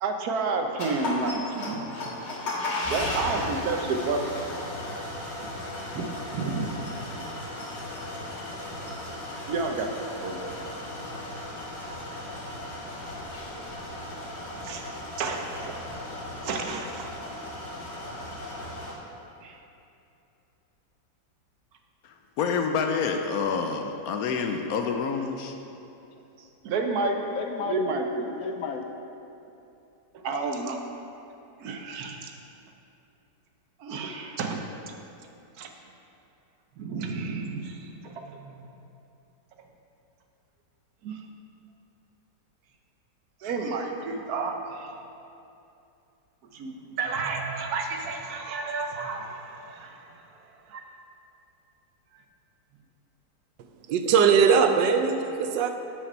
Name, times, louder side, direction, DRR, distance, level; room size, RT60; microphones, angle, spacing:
voice 1, 0.0-2.1 2.8-4.2 5.4-5.5 5.9-6.9 9.5-9.9 10.2-10.5 14.6-14.9 15.2-15.7 16.4-17.1 19.4-19.6 26.6-27.2 27.6-28.3 30.1-30.8 31.6-32.3 33.8-34.7 35.6-35.7 36.8-38.5 41.0-41.2 43.4-44.9 46.5-50.2 50.7-50.8, right 3 dB, 65° right, 4 dB, 1.2 m, -31 dB
sound 1, 0.8-18.9, left 1 dB, 40° left, 1.7 m, -36 dB
voice 2, 22.0-25.6 27.3-27.8 28.4-28.9, left 5 dB, 70° left, 4 dB, 0.9 m, -28 dB
voice 3, 53.9-55.7, right 6 dB, 85° right, 6 dB, 1.3 m, -20 dB
8.4 x 5.1 x 5.5 m, 2.8 s
omnidirectional pair, 1.9 m